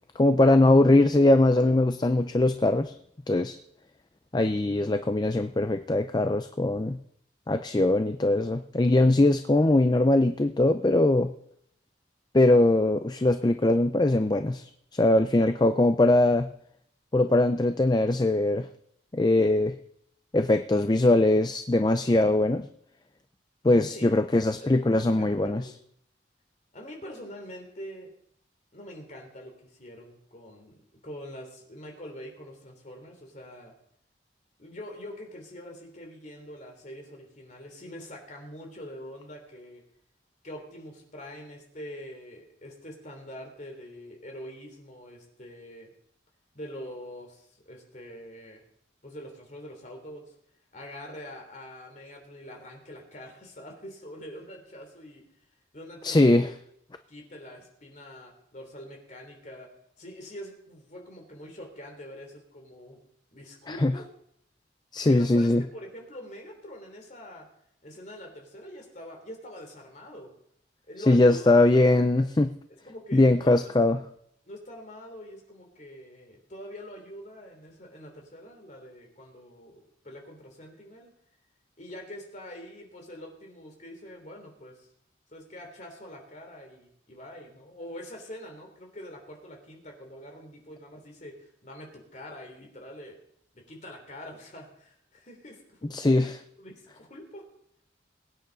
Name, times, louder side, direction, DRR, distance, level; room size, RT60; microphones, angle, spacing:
voice 1, 0.2-2.9 3.3-3.6 4.3-7.0 7.5-11.3 12.3-16.5 17.1-18.7 19.1-19.8 20.3-22.7 23.6-25.7 56.0-56.5 63.7-63.9 64.9-65.6 71.1-72.5 73.1-74.0 95.9-96.4, left 2 dB, 20° left, 9 dB, 0.4 m, -21 dB
voice 2, 23.8-25.8 26.7-28.1 28.7-33.7 34.6-39.8 40.4-45.9 46.5-48.6 49.0-50.4 50.7-55.2 55.7-56.5 57.1-63.0 63.3-64.1 65.1-67.5 67.8-70.3 70.9-71.6 72.2-72.3 72.7-74.0 74.5-81.1 81.8-84.9 85.3-93.2 93.5-96.3 96.6-97.4, equal, 40° left, 2 dB, 3.3 m, -44 dB
22.0 x 9.2 x 4.0 m, 0.70 s
head